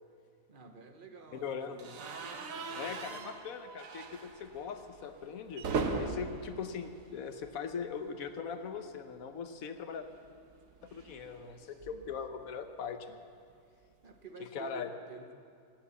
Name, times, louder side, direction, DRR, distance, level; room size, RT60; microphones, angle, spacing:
voice 1, 0.5-1.9 2.5-3.4 11.6-12.1 14.0-15.3, right 4 dB, 40° right, 6 dB, 1.1 m, -52 dB
voice 2, 1.3-2.0 2.7-5.7 5.9-10.1 10.8-13.2 14.4-14.9, left 6 dB, 85° left, 8 dB, 1.4 m, -40 dB
sound 1, 1.8-7.8 8.1-8.3 8.6-8.7 9.9-12.3, right 4 dB, 75° right, 1.4 m, -40 dB
16.5 x 10.5 x 7.1 m, 2.4 s
omnidirectional pair, 1.4 m